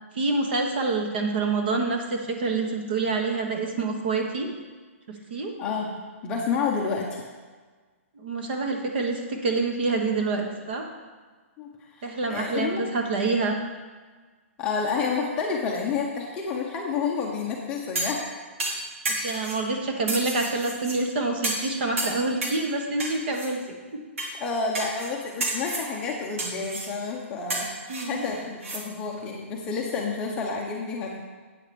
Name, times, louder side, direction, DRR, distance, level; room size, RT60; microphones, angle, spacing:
voice 1, 0.1-4.5 5.3-5.5 8.2-10.8 12.0-13.6 19.2-23.6 23.9-24.0 27.9-28.2, right 3 dB, 45° right, 2 dB, 1.3 m, -27 dB
voice 2, 5.6-5.9 6.2-7.3 11.6-12.8 14.6-18.2 24.3-27.7 28.0-31.2, left 5 dB, 15° left, -1 dB, 0.6 m, -29 dB
sound 1, 17.9-18.2 18.6-19.6 20.1-21.0 21.4-21.7 22.0-22.6 23.0-23.5 24.2-24.3 24.7-25.1 25.4-25.9 26.4-26.9 27.5-28.8 29.2-29.3, right 2 dB, 65° right, 2.0 m, -31 dB
8.3 x 4.7 x 6.8 m, 1.4 s
hypercardioid pair, 175°, 8 cm